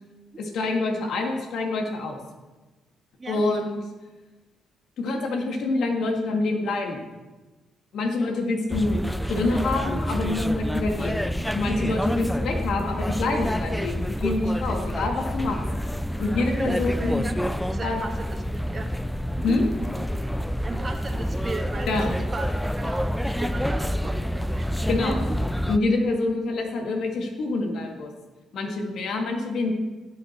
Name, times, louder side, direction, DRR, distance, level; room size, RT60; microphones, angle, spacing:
voice 1, 0.4-2.2 3.3-3.8 5.0-7.0 7.9-9.0 9.3-11.2 11.5-15.6 16.2-17.2 17.8-18.0 19.4-19.6 21.9-22.1 24.9-25.2 25.7-28.1 28.5-29.7, left 2 dB, 70° left, 2 dB, 2.0 m, -26 dB
sound 1, 8.7-25.8, equal, 5° left, 0.4 m, -28 dB
voice 2, 16.6-17.4 17.7-18.9 19.3-19.6 20.6-24.7 25.0-25.4, right 3 dB, 30° right, 4 dB, 1.5 m, -36 dB
16.0 x 6.6 x 4.4 m, 1.2 s
cardioid pair, 90°, 0 cm